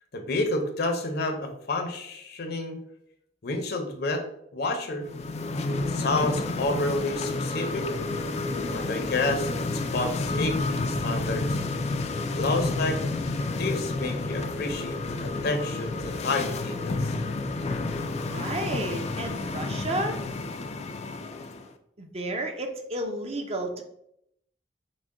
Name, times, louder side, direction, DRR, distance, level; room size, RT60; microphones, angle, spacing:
voice 1, 0.1-2.8 3.4-4.2 4.5-5.0 5.9-7.9 8.7-11.6 12.3-13.0 13.6-17.1, left 2 dB, 60° left, 5 dB, 0.8 m, -29 dB
sound 1, 5.0-21.7, left 2 dB, 40° left, 0.4 m, -30 dB
voice 2, 18.2-20.2 22.0-23.8, right 1 dB, 35° right, 4 dB, 0.6 m, -32 dB
6.1 x 2.2 x 3.7 m, 0.75 s
head